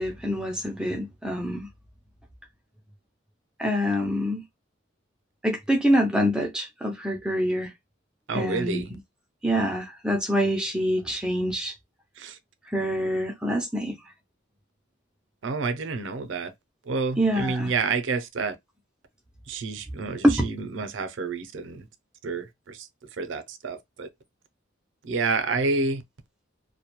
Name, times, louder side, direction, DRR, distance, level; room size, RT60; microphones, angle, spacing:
voice 1, 0.0-1.7 3.6-4.4 5.4-7.7 8.3-9.0 9.4-11.7 12.7-13.9 17.2-17.7 20.2-20.4, equal, 5° right, 0.3 m, -25 dB
voice 2, 8.3-8.9 12.2-12.3 15.4-16.5 16.9-18.5 19.5-21.8 22.2-22.8 23.2-24.1 25.0-26.0, right 4 dB, 65° right, 0.5 m, -29 dB
2.2 x 2.1 x 2.9 m
head